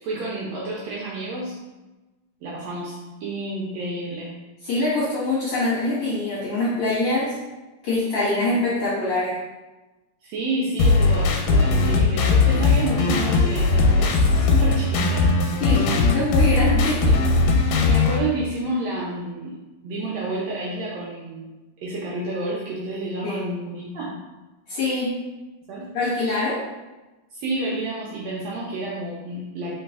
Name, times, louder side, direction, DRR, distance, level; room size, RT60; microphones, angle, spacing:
voice 1, 0.0-1.6 2.4-4.3 8.5-8.6 10.2-15.3 15.6-15.7 17.9-19.6 19.8-21.5 21.8-24.1 25.7-25.9 27.3-29.8, right 2 dB, 75° right, -5 dB, 1.6 m, -30 dB
voice 2, 4.6-7.4 7.8-9.4 15.6-17.1 17.5-17.7 23.2-23.4 24.7-25.1 25.9-26.6, left 2 dB, 55° left, -8 dB, 1.7 m, -24 dB
sound 1, 10.8-18.2, left 3 dB, 90° left, 2.3 m, -19 dB
4.0 x 3.9 x 3.5 m, 1.1 s
omnidirectional pair, 3.7 m